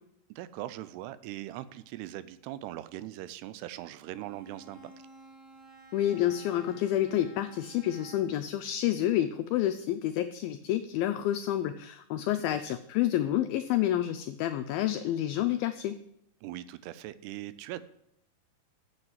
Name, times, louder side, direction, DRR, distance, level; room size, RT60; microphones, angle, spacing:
voice 1, 0.3-4.9 12.3-12.7 16.4-17.8, right 14 dB, 85° right, 14 dB, 2.5 m, -41 dB
Bowed string instrument, 4.0-8.5, equal, 35° left, 0.9 m, -53 dB
voice 2, 5.9-16.0, left 12 dB, 85° left, 8 dB, 2.1 m, -29 dB
7.9 x 7.5 x 7.4 m, 0.76 s
omnidirectional pair, 4.8 m